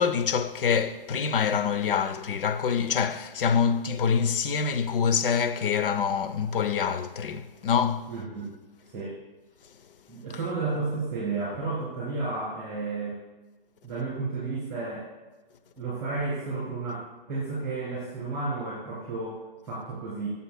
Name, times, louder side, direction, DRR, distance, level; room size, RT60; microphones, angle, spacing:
voice 1, 0.0-8.1, left 6 dB, 65° left, 0.7 m, -25 dB
voice 2, 8.1-8.5 8.8-9.2 10.1-13.2 13.8-15.1 15.8-20.3, right 3 dB, 10° right, 2.7 m, -32 dB
12.5 x 7.1 x 2.2 m
hypercardioid pair, 140°, 29 cm